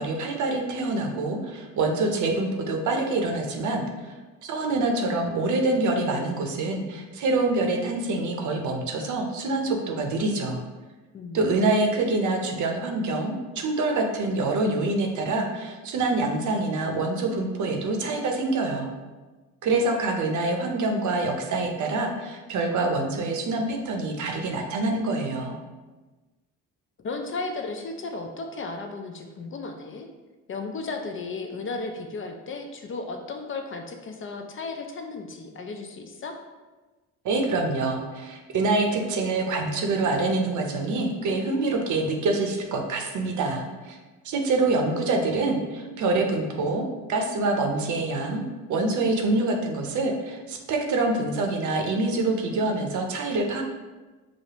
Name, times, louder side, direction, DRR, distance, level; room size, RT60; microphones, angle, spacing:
voice 1, 0.0-4.1 4.4-10.6 11.3-18.9 19.6-25.6 37.2-44.0 44.2-48.4 48.7-53.6, right 2 dB, 55° right, 3 dB, 0.7 m, -26 dB
voice 2, 11.1-11.7 27.0-30.1 30.5-36.4, left 3 dB, 35° left, 4 dB, 0.4 m, -35 dB
4.9 x 2.0 x 2.9 m, 1.2 s
supercardioid pair, 80°, 35 cm